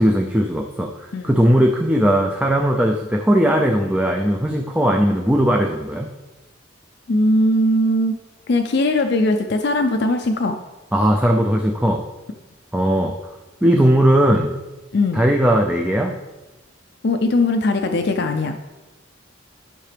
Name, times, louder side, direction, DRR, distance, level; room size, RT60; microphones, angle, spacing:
voice 1, 0.0-6.1 10.9-12.0 12.7-13.1 13.6-14.5 15.1-16.1, equal, 5° right, 1 dB, 0.4 m, -18 dB
voice 2, 7.1-8.1 8.5-10.6 14.9-15.2 17.0-18.6, left 1 dB, 55° left, 5 dB, 0.5 m, -19 dB
12.0 x 5.7 x 3.4 m, 1.1 s
head